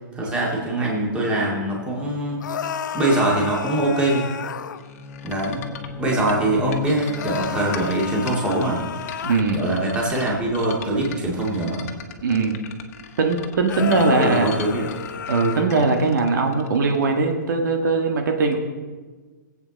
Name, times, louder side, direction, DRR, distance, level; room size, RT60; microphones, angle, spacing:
voice 1, 0.1-2.4 2.9-4.3 5.2-5.6 6.0-8.8 9.5-11.9 13.8-14.9, right 1 dB, 10° right, -3 dB, 2.2 m, -23 dB
sound 1, 2.4-4.8 7.2-9.4 13.7-15.8, left 8 dB, 70° left, 0.7 m, -32 dB
Bowed string instrument, 4.7-8.3, left 1 dB, 10° left, 0.7 m, -36 dB
sound 2, 4.8-17.3, left 9 dB, 45° left, 1.3 m, -40 dB
voice 2, 9.2-9.6 12.2-12.6 13.2-14.5 15.3-18.6, right 4 dB, 70° right, 3 dB, 1.6 m, -20 dB
21.5 x 8.3 x 4.1 m, 1.4 s
hypercardioid pair, 165°, 11 cm